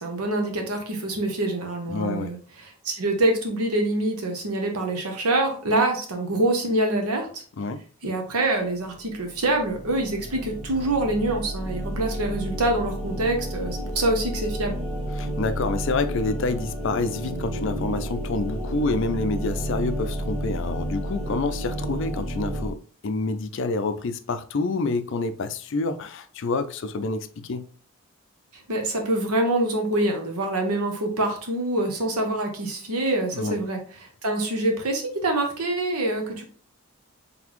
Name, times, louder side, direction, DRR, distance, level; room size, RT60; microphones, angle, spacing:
voice 1, 0.0-7.4 8.0-14.8 28.7-36.4, right 2 dB, 90° right, 1.1 m, -25 dB
voice 2, 1.9-2.3 7.6-7.8 15.2-27.6 33.3-33.6, left 3 dB, 55° left, 0.4 m, -28 dB
sound 1, 8.9-22.7, right 1 dB, 25° right, 1.0 m, -31 dB
3.9 x 3.4 x 3.0 m
head